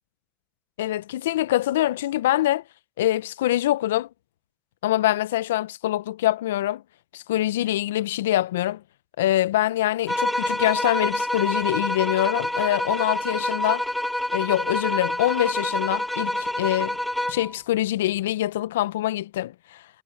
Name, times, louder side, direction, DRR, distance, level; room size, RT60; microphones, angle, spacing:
voice 1, 0.8-2.6 3.0-4.1 4.8-6.8 7.1-8.8 9.2-13.8 14.3-17.0 17.3-19.8, left 14 dB, 80° left, 1.2 m, -24 dB
sound 1, 10.1-17.5, left 1 dB, 5° left, 2.8 m, -27 dB
hypercardioid pair, 60°, 0 cm